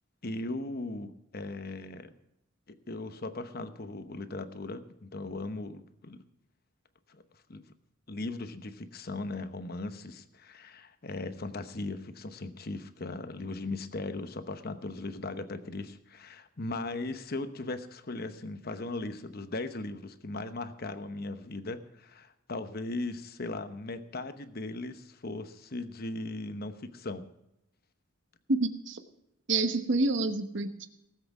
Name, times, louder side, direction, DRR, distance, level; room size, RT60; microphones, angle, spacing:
voice 1, 0.2-2.1 2.7-6.2 7.1-7.2 7.5-7.6 8.1-27.3, left 2 dB, 50° left, 10 dB, 1.0 m, -38 dB
voice 2, 28.5-29.0 29.5-30.9, right 2 dB, 60° right, 9 dB, 1.1 m, -28 dB
18.5 x 7.9 x 5.9 m, 0.84 s
head